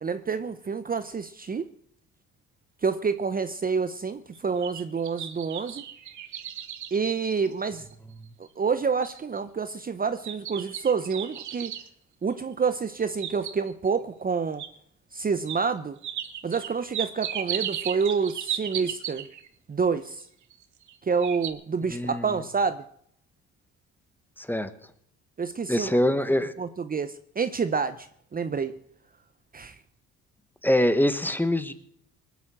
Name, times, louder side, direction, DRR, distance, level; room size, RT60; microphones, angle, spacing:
voice 1, 0.0-1.7 2.8-5.8 6.9-7.8 8.6-11.7 12.2-14.6 15.1-16.0 16.4-19.3 19.7-20.2 21.0-22.8 25.4-26.0 26.6-28.8 29.5-29.8, right 5 dB, 30° right, 12 dB, 0.8 m, -28 dB
sound 1, 4.4-7.9 8.4-8.5 9.0-9.4 10.2-11.9 12.9-13.9 14.6-14.7 15.5-15.6 16.0-19.5 20.5-20.9 21.2-21.5, right 10 dB, 70° right, 1.3 m, -35 dB
voice 2, 21.9-22.3 24.4-24.7 25.7-26.5 30.6-31.7, left 1 dB, 5° left, 11 dB, 1.3 m, -24 dB
20.0 x 8.3 x 7.6 m, 0.66 s
cardioid pair, 90°, 30 cm